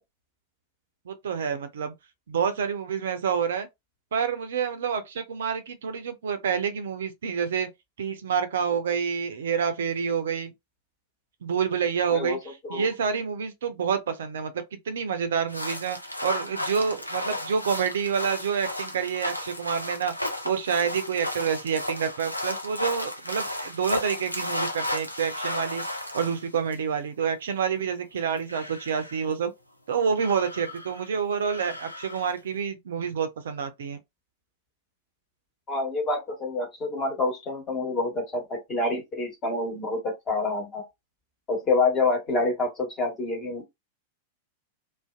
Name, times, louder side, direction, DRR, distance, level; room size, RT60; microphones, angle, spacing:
voice 1, 1.1-1.9 2.3-3.7 4.1-7.7 8.0-10.5 11.4-20.1 20.4-25.8 26.1-29.5 29.9-34.0, right 6 dB, 60° right, 0.4 m, -28 dB
sound 1, 15.5-26.7 28.2-29.2 30.1-31.1 31.4-32.4, left 1 dB, 90° left, 0.4 m, -34 dB
voice 2, 35.7-40.8 41.5-43.7, left 3 dB, 25° left, 1.2 m, -27 dB
2.5 x 2.1 x 2.3 m
figure-of-eight pair, 95°, 0 cm